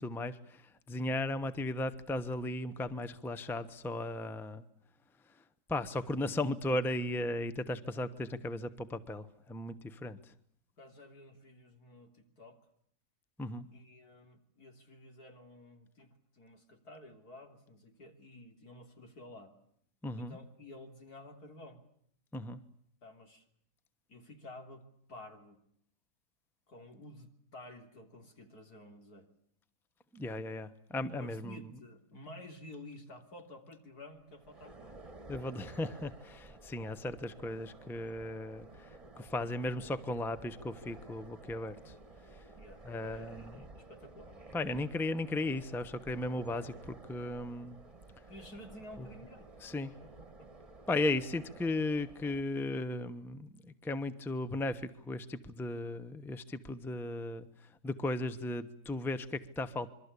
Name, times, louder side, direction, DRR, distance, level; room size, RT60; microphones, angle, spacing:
voice 1, 0.0-4.6 5.7-10.3 13.4-13.7 20.0-20.4 22.3-22.6 30.1-31.7 35.3-41.9 42.3-42.4 42.8-43.5 44.5-47.8 49.0-49.1 49.6-49.9 50.9-59.9, left 2 dB, ahead, 12 dB, 0.9 m, -36 dB
voice 2, 10.8-12.6 13.7-19.5 20.2-21.8 23.0-23.5 24.1-24.8 25.1-25.6 26.7-29.3 31.2-35.0 42.5-44.5 48.3-49.5 50.0-50.5, left 1 dB, 75° left, 4 dB, 3.8 m, -52 dB
sound 1, 34.2-52.4, right 2 dB, 25° right, 1.5 m, -53 dB
27.0 x 23.5 x 8.4 m, 0.68 s
omnidirectional pair, 1.7 m